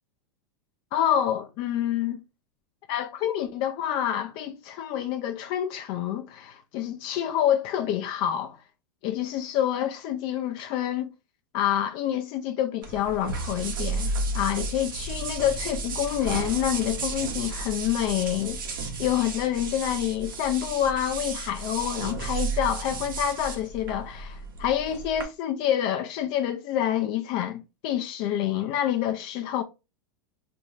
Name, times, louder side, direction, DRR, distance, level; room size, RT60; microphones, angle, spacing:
voice 1, 0.9-2.2 2.9-8.6 9.0-11.1 11.5-14.1 14.3-29.6, left 11 dB, 50° left, 0.4 m, -27 dB
sound 1, 12.8-25.2, right 3 dB, 90° right, 0.9 m, -33 dB
2.6 x 2.3 x 3.1 m
hypercardioid pair, 115°, 11 cm